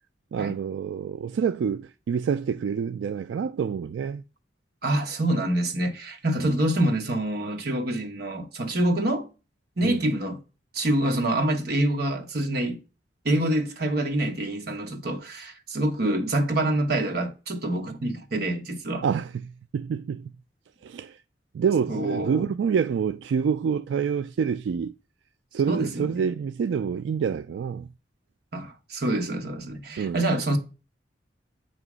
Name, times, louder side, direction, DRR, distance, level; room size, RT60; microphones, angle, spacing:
voice 1, 0.3-4.2 6.4-6.5 9.8-10.0 19.0-20.3 20.8-21.2 21.5-24.9 25.5-27.9 30.0-30.2, right 6 dB, 85° right, 0.3 m, -27 dB
voice 2, 4.8-9.3 9.8-10.4 10.7-12.8 13.2-19.0 21.9-22.5 25.7-26.2 28.5-30.6, right 1 dB, 60° right, 1.2 m, -26 dB
8.1 x 3.0 x 6.1 m
head